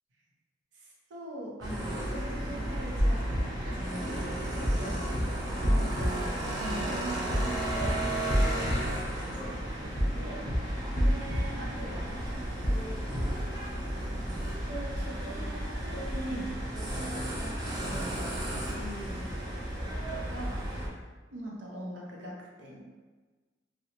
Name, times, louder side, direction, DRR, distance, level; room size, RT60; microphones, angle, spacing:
voice 1, 0.7-10.5 10.9-13.0 13.8-15.4 15.9-18.2 18.5-20.7 21.3-22.8, right 1 dB, 80° right, -3 dB, 0.5 m, -42 dB
sound 1, 1.6-20.9, right 1 dB, 20° right, 0.4 m, -34 dB
sound 2, 3.0-3.4 4.6-4.8 5.1-5.2 5.6-6.1 7.3-7.5 7.8-7.9 8.3-8.7 10.0-10.2 10.5-10.6 11.0-11.4 12.6-12.8 13.1-13.2, equal, 40° left, 0.7 m, -26 dB
2.7 x 2.0 x 2.8 m, 1.3 s
head